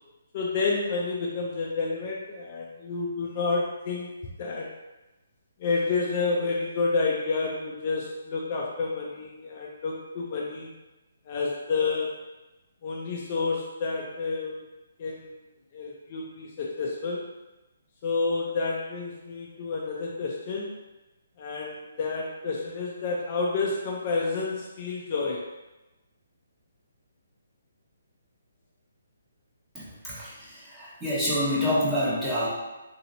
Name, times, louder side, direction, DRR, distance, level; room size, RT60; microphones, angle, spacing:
voice 1, 0.3-4.1 4.4-4.7 5.6-10.7 11.3-12.2 12.8-14.6 15.0-15.3 15.7-17.2 18.0-20.7 21.4-25.4, left 4 dB, 35° left, -2 dB, 0.4 m, -29 dB
voice 2, 29.7-30.3 30.7-32.5, left 1 dB, 5° right, -9 dB, 0.8 m, -27 dB
3.0 x 2.7 x 2.7 m, 1.0 s
hypercardioid pair, 160°, 0 cm